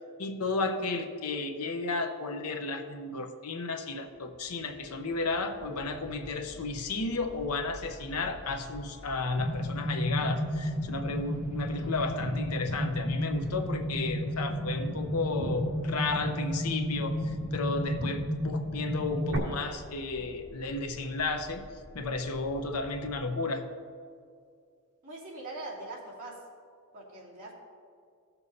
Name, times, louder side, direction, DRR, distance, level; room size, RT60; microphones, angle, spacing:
voice 1, 0.2-21.7 21.9-23.6, left 3 dB, 75° left, 6 dB, 0.8 m, -33 dB
sound 1, 4.1-23.2, equal, 35° left, 2.6 m, -50 dB
sound 2, 9.4-19.4, equal, 60° right, 1.6 m, -32 dB
voice 2, 25.0-26.4 26.9-27.5, right 2 dB, 40° right, -6 dB, 2.7 m, -42 dB
16.5 x 6.9 x 2.8 m, 2.2 s
head